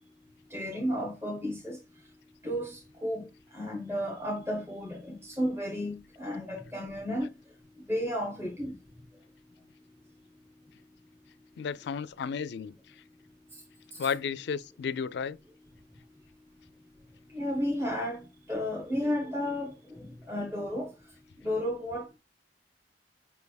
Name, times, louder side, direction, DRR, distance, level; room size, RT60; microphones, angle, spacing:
voice 1, 0.5-1.8 2.4-3.3 3.5-7.3 7.9-8.8 13.9-14.1 17.3-20.9 21.4-22.2, equal, 15° right, 1.1 m, -33 dB
voice 2, 11.6-12.9 14.0-15.4, left 6 dB, 65° left, 0.4 m, -33 dB
5.6 x 3.4 x 2.3 m
head